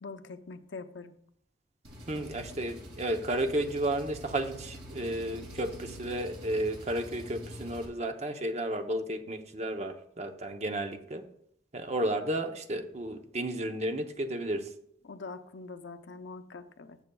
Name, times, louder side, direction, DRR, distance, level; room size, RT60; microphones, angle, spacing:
voice 1, 0.0-1.1 15.0-17.0, left 3 dB, 80° left, 8 dB, 0.7 m, -43 dB
Engine, 1.8-7.9, equal, 65° right, 2.2 m, -45 dB
voice 2, 2.1-11.3 11.7-14.7, right 1 dB, 40° right, 6 dB, 0.7 m, -32 dB
14.0 x 6.8 x 2.3 m, 0.69 s
head